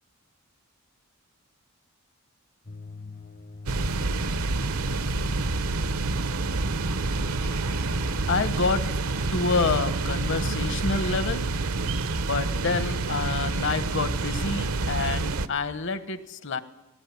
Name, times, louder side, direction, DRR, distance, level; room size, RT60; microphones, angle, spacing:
sound 1, 2.7-8.5, left 4 dB, 40° left, 0.8 m, -43 dB
sound 2, 3.7-15.5, right 3 dB, 85° right, 0.9 m, -28 dB
Bowed string instrument, 6.8-11.1, equal, 85° left, 4.8 m, -51 dB
voice 1, 8.3-8.9 9.3-11.5 12.2-16.6, left 4 dB, 60° left, 12 dB, 1.3 m, -28 dB
19.0 x 18.0 x 9.6 m, 0.97 s
head